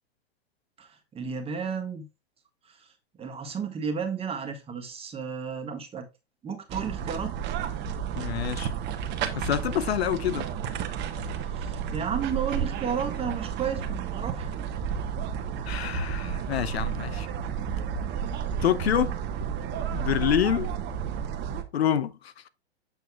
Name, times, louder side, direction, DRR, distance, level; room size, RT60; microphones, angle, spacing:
voice 1, 0.8-2.1 2.7-2.8 3.2-6.1 6.4-7.3 11.3-14.5, right 6 dB, 20° right, 1.5 m, -33 dB
sound 1, 6.7-21.6, right 7 dB, 35° right, 1.2 m, -32 dB
voice 2, 8.2-8.7 9.4-10.5 15.6-17.3 18.6-19.2 19.9-20.7 21.7-22.5, left 10 dB, 75° left, 0.7 m, -27 dB
8.0 x 6.4 x 2.3 m
hypercardioid pair, 110°, 32 cm